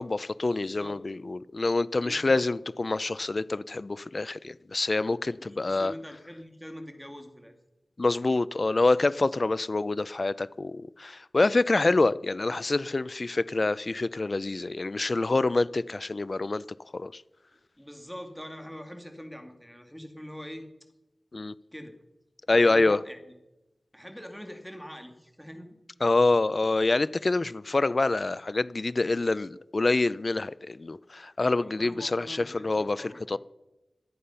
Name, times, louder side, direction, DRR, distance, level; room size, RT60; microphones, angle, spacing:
voice 1, 0.0-5.9 8.0-16.6 16.9-17.2 21.3-21.5 22.5-23.0 26.0-33.4, left 3 dB, 50° left, 18 dB, 0.5 m, -26 dB
voice 2, 0.6-1.0 1.9-2.4 5.4-7.5 17.8-20.6 21.7-22.0 22.5-23.4 23.9-25.7 31.6-33.4, equal, ahead, 5 dB, 2.3 m, -43 dB
25.0 x 8.6 x 5.6 m, 0.97 s
wide cardioid pair, 70°, 0 cm